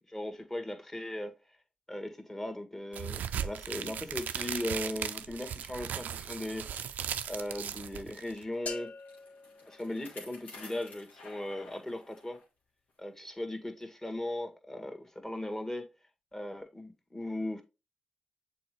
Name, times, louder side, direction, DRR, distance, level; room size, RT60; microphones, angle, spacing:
voice 1, 0.1-1.3 1.9-6.7 7.3-8.9 9.7-12.4 13.0-15.8 16.3-17.6, left 1 dB, 15° left, 1.8 m, -38 dB
sound 1, 2.9-8.4, right 9 dB, 80° right, 0.4 m, -37 dB
Bicycle, 8.5-12.5 12.9-13.0 13.8-13.9, left 3 dB, 85° left, 2.2 m, -52 dB
sound 2, 8.7-10.6, left 4 dB, 60° left, 0.8 m, -45 dB
6.9 x 4.3 x 3.3 m
supercardioid pair, 45°, 3 cm